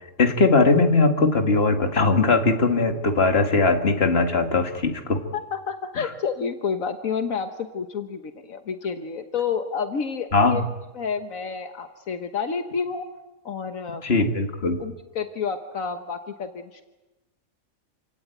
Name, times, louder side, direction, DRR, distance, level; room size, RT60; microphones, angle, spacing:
voice 1, 0.2-5.2 6.0-6.1 10.3-10.6 14.0-14.8, left 3 dB, 45° left, 5 dB, 2.3 m, -20 dB
voice 2, 5.3-10.6 10.9-13.1 13.4-14.0 14.8-16.8, left 6 dB, 75° left, 7 dB, 1.6 m, -29 dB
28.0 x 17.5 x 9.3 m, 1.1 s
omnidirectional pair, 1.4 m